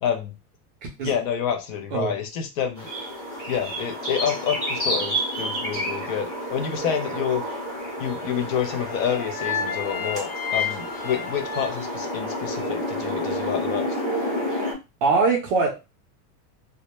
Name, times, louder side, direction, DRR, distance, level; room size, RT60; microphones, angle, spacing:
voice 1, 0.0-0.3 1.0-2.9 3.5-7.4 8.0-13.9, left 8 dB, 55° left, 6 dB, 0.6 m, -28 dB
sound 1, 2.8-14.7, equal, 10° left, 0.7 m, -30 dB
sound 2, 8.6-12.8, left 6 dB, 75° left, 0.9 m, -32 dB
voice 2, 15.0-15.7, right 4 dB, 35° right, 0 dB, 0.4 m, -21 dB
2.1 x 2.0 x 2.9 m, 0.26 s
supercardioid pair, 165°, 49 cm